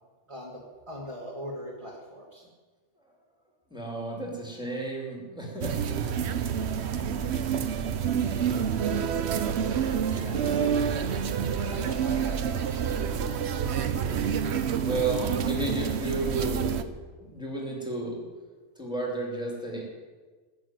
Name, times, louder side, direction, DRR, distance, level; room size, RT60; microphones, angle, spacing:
voice 1, 0.3-2.5 9.7-10.6 11.7-12.9, equal, 20° right, -3 dB, 2.0 m, -41 dB
voice 2, 3.7-5.9 10.1-10.8 14.7-16.9 17.2-18.2 18.8-19.8, right 2 dB, 5° right, -2 dB, 2.9 m, -33 dB
sound 1, 5.6-16.8, right 7 dB, 55° right, 1.0 m, -28 dB
16.0 x 6.9 x 9.2 m, 1.4 s
omnidirectional pair, 1.4 m